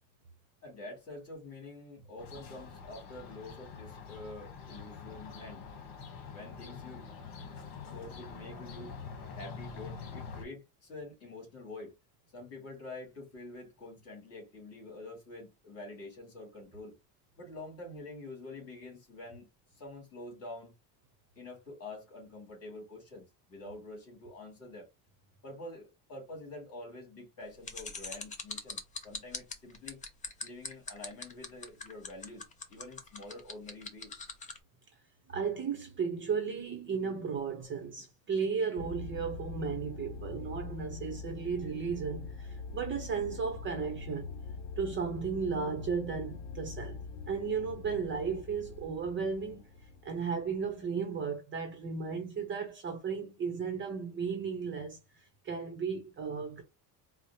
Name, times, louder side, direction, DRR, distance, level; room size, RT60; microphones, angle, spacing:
voice 1, 0.6-5.6 6.3-7.0 7.9-8.9 9.3-11.9 12.3-17.0 17.4-19.5 19.7-20.7 21.4-24.9 25.4-30.0 30.4-34.1, left 2 dB, 35° left, 2.4 m, -47 dB
sound 1, 2.2-10.5, left 5 dB, 55° left, 1.3 m, -45 dB
sound 2, 27.6-34.6, left 5 dB, 20° left, 0.4 m, -41 dB
voice 2, 35.3-44.3 44.8-47.0 47.3-49.6 50.0-56.6, right 6 dB, 30° right, 0.7 m, -35 dB
sound 3, 38.8-50.7, left 4 dB, 75° left, 0.7 m, -43 dB
4.7 x 2.1 x 2.9 m
cardioid pair, 170°, 42 cm